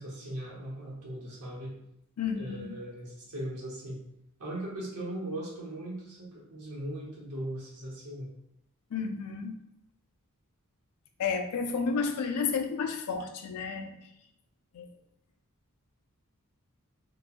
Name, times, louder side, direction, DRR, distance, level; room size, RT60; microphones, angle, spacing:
voice 1, 0.0-1.8 2.3-4.0 4.4-8.3, right 1 dB, 75° right, -4 dB, 1.0 m, -39 dB
voice 2, 2.2-2.8 8.9-9.6 11.2-13.9 14.7-14.9, left 5 dB, 90° left, 5 dB, 0.4 m, -31 dB
2.9 x 2.2 x 2.4 m, 0.80 s
head